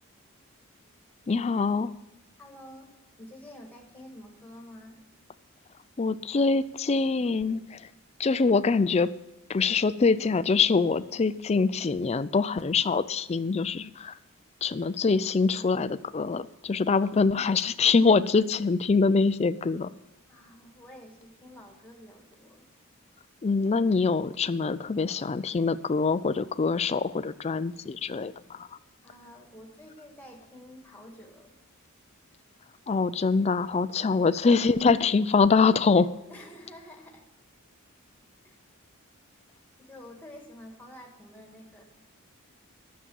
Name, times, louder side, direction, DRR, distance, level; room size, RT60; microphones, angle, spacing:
voice 1, 1.3-1.9 6.0-7.9 8.2-9.1 9.5-14.1 14.6-19.9 23.4-28.7 32.9-36.1, left 4 dB, 30° left, 14 dB, 0.4 m, -24 dB
voice 2, 2.4-2.9 3.2-5.0 20.3-22.6 29.0-31.5 34.2-34.5 36.3-37.2 38.4-38.6 39.8-41.8, left 1 dB, 10° left, 1 dB, 1.7 m, -48 dB
11.0 x 7.3 x 7.0 m, 0.92 s
head